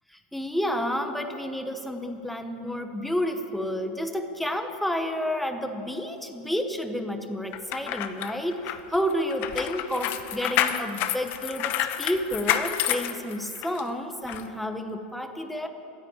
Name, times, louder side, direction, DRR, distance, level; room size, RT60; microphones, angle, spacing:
voice 1, 0.1-15.7, equal, ahead, 6 dB, 1.0 m, -30 dB
sound 1, 7.5-13.8 14.3-14.4, left 11 dB, 40° left, 0.8 m, -29 dB
13.0 x 10.0 x 8.8 m, 2.8 s
supercardioid pair, 145°, 5 cm